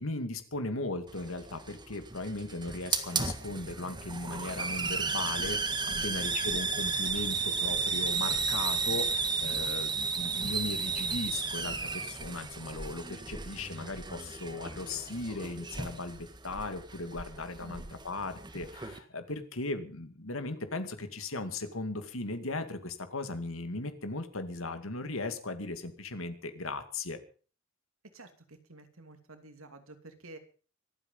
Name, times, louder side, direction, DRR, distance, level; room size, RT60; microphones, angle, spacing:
voice 1, 0.0-5.8 6.0-27.2, left 2 dB, 75° left, 9 dB, 2.3 m, -37 dB
Hiss, 1.1-19.0, right 4 dB, 20° right, 1.7 m, -34 dB
voice 2, 5.9-6.3 17.6-18.0 28.1-30.4, right 2 dB, 75° right, 7 dB, 2.8 m, -50 dB
25.0 x 9.0 x 5.6 m, 0.40 s
head